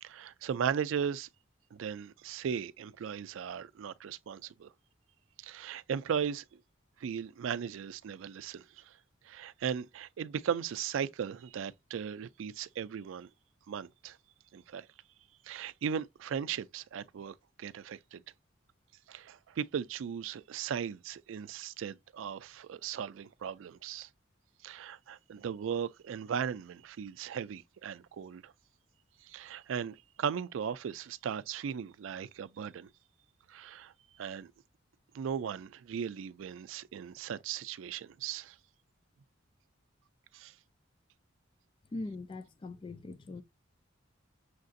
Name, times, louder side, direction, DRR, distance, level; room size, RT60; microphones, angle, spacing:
voice 1, 0.0-1.3 1.7-4.7 5.4-6.4 7.0-9.0 9.2-13.3 13.7-14.2 14.5-14.9 15.4-18.2 19.1-24.1 24.6-28.5 29.2-32.9 33.5-34.5 35.1-38.6 40.3-40.5, right 7 dB, 80° right, 0.3 m, -37 dB
voice 2, 41.9-43.4, left 2 dB, 25° left, 0.3 m, -41 dB
6.5 x 2.6 x 2.4 m
head